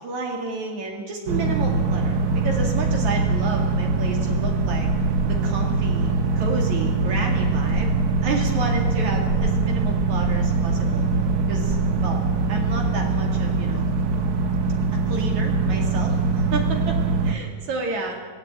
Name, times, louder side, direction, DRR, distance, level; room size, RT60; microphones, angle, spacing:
voice 1, 0.0-4.9 5.3-6.1 6.4-7.9 8.2-11.1 11.5-12.2 12.5-13.9 15.1-18.2, right 3 dB, 70° right, 1 dB, 3.6 m, -31 dB
sound 1, 1.3-17.3, right 4 dB, 45° right, 1.4 m, -22 dB
17.5 x 17.0 x 9.0 m, 1.4 s
omnidirectional pair, 3.5 m